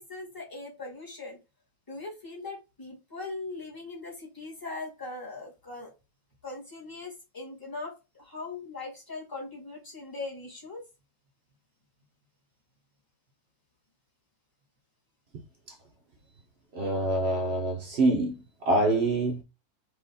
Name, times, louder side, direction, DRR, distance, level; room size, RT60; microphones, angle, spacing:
voice 1, 0.0-1.4 1.9-5.9 6.4-10.8, left 3 dB, 10° left, 1.4 m, -40 dB
voice 2, 16.7-18.3 18.7-19.4, right 2 dB, 80° right, 0.5 m, -25 dB
4.3 x 2.9 x 3.5 m
omnidirectional pair, 2.0 m